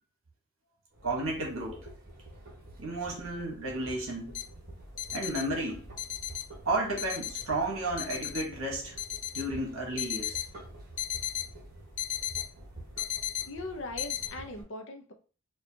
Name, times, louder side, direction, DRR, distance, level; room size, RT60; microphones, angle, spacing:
sound 1, 0.9-14.6, right 1 dB, 45° right, 1.3 m, -49 dB
voice 1, 1.0-1.9 2.8-4.4 5.1-5.8 6.6-8.9 9.3-10.4, right 2 dB, 60° right, 1.2 m, -32 dB
sound 2, 4.3-4.4 5.0-5.4 6.0-6.4 7.0-7.4 8.0-8.4 9.0-9.4 10.0-10.5 11.0-11.5 12.0-12.5 13.0-13.5 14.0-14.3, left 11 dB, 35° left, 0.3 m, -34 dB
voice 2, 13.5-15.1, left 2 dB, 55° left, 0.7 m, -40 dB
5.1 x 2.4 x 2.7 m
head